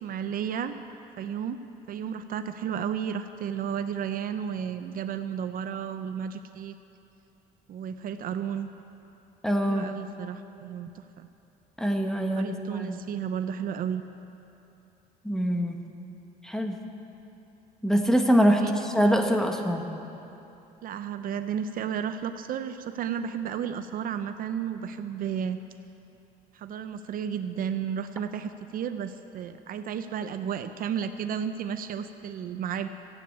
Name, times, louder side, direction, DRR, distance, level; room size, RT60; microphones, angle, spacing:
voice 1, 0.0-0.8 1.2-1.6 1.9-6.8 7.7-8.7 9.7-11.3 12.3-14.0 18.5-18.8 20.8-25.6 26.5-32.9, right 8 dB, 55° right, 10 dB, 0.6 m, -33 dB
voice 2, 9.4-9.9 11.8-13.0 15.2-15.8 16.4-16.8 17.8-19.9, equal, 5° left, 3 dB, 1.3 m, -24 dB
14.5 x 8.6 x 8.5 m, 2.9 s
cardioid pair, 110°, 17 cm